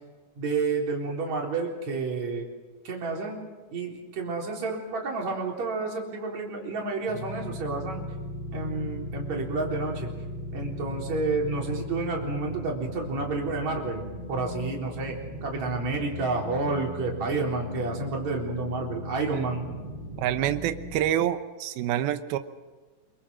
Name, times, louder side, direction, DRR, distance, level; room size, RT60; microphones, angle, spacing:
voice 1, 0.4-2.5 2.8-3.4 3.7-8.0 8.5-10.1 10.5-19.7, right 3 dB, 50° right, 0 dB, 5.0 m, -30 dB
sound 1, 7.1-21.1, left 1 dB, 10° right, 5.6 m, -38 dB
voice 2, 20.2-22.4, right 11 dB, 80° right, 10 dB, 2.9 m, -27 dB
25.5 x 24.0 x 6.3 m, 1.3 s
omnidirectional pair, 4.4 m